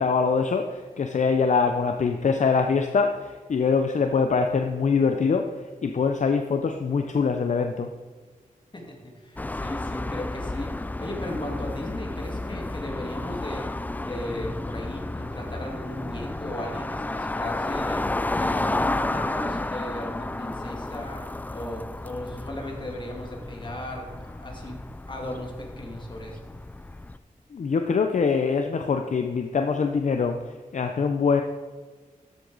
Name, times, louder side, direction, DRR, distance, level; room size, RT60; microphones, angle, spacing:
voice 1, 0.0-7.9 27.5-31.4, left 5 dB, 60° left, 5 dB, 0.6 m, -24 dB
voice 2, 8.7-13.7 14.0-18.0 18.4-21.3 21.5-24.8 25.1-26.5, left 1 dB, 35° left, 0 dB, 2.3 m, -36 dB
sound 1, 9.4-27.2, left 2 dB, 10° left, 0.3 m, -32 dB
13.0 x 8.0 x 4.0 m, 1.4 s
wide cardioid pair, 90°, 14 cm